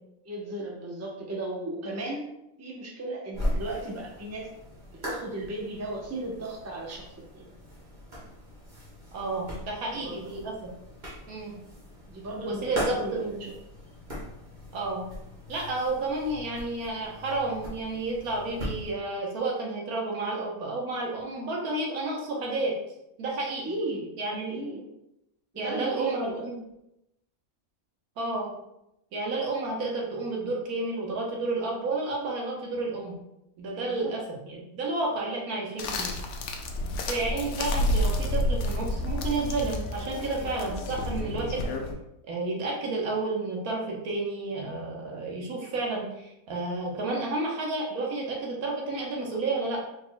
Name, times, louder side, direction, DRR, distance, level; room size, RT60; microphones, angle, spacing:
voice 1, 0.2-2.3 2.6-4.5 4.9-7.1 7.3-7.5 9.9-10.4 12.1-13.5 23.6-24.8 25.5-26.4 33.7-34.1 40.4-40.5, right 1 dB, 15° right, -2 dB, 0.5 m, -36 dB
sound 1, 3.3-18.9, equal, 35° right, 1.4 m, -39 dB
voice 2, 9.1-10.7 11.3-11.6 12.5-13.5 14.7-15.1 15.5-22.7 23.2-23.6 24.2-24.6 25.6-26.6 28.2-28.5 29.1-33.2 33.6-36.1 37.1-41.6 42.3-49.8, right 2 dB, 85° right, -2 dB, 1.5 m, -31 dB
sound 2, 35.8-41.9, left 1 dB, 65° left, 0.8 m, -30 dB
4.5 x 4.2 x 2.2 m, 0.85 s
omnidirectional pair, 1.5 m